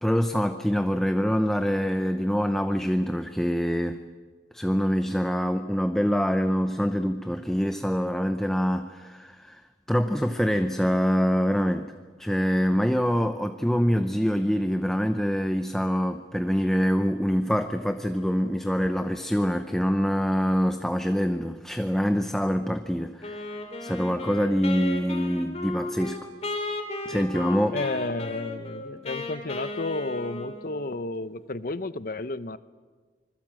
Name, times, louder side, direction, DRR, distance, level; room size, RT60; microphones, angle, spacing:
voice 1, 0.0-4.0 4.5-9.6 9.9-11.9 12.2-23.5 23.8-26.3 27.0-27.8, equal, 5° left, 7 dB, 0.7 m, -25 dB
Wind instrument woodwind instrument, 23.2-30.9, left 2 dB, 35° left, 3.3 m, -35 dB
voice 2, 27.7-32.6, left 2 dB, 50° left, 14 dB, 0.8 m, -32 dB
26.0 x 21.5 x 7.6 m, 1.5 s
head